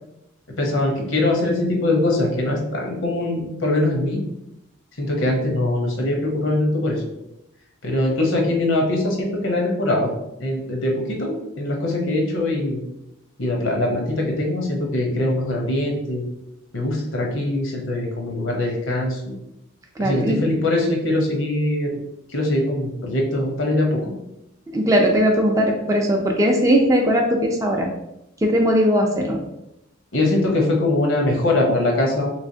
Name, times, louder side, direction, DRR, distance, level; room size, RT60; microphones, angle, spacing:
voice 1, 0.6-4.2 5.0-7.0 7.8-10.1 10.4-12.8 13.4-16.3 16.7-19.4 20.0-22.0 22.3-24.1 30.1-32.3, left 1 dB, 75° left, 0 dB, 0.9 m, -22 dB
voice 2, 20.0-20.4 24.7-27.9 28.4-29.4, equal, 15° right, 1 dB, 0.4 m, -19 dB
3.4 x 3.1 x 2.7 m, 0.84 s
head